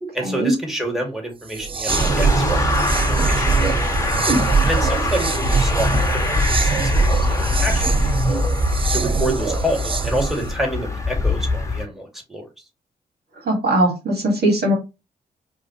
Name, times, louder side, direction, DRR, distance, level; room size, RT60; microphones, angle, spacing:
voice 1, 0.1-2.7 3.0-3.5 4.6-8.4 8.9-12.5, equal, ahead, 1 dB, 2.1 m, -28 dB
sound 1, 1.5-10.5, right 5 dB, 30° right, 0.4 m, -22 dB
sound 2, 1.9-11.8, left 3 dB, 15° left, 1.2 m, -23 dB
voice 2, 13.5-14.7, right 1 dB, 60° right, 1 dB, 1.8 m, -19 dB
4.7 x 2.7 x 3.0 m, 0.26 s
hypercardioid pair, 40°, 19 cm